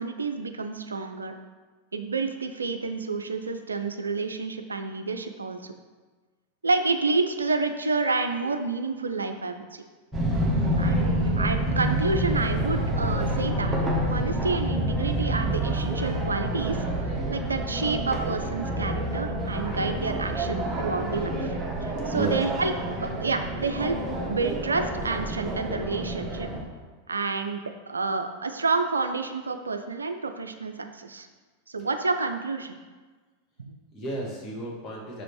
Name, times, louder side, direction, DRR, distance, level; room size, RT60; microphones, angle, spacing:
voice 1, 0.0-1.4 1.9-5.7 6.6-9.8 10.8-13.8 14.1-16.8 17.1-22.7 23.0-24.0 24.3-26.5 27.1-27.6 27.9-31.3 31.7-32.8 33.7-33.8, right 3 dB, 75° right, 7 dB, 0.4 m, -29 dB
sound 1, 10.1-26.6, right 1 dB, 10° right, 1.5 m, -28 dB
voice 2, 10.4-10.9 22.1-22.4 33.9-35.2, right 2 dB, 30° left, -3 dB, 2.0 m, -33 dB
6.2 x 5.1 x 4.6 m, 1.3 s
figure-of-eight pair, 90°, 0 cm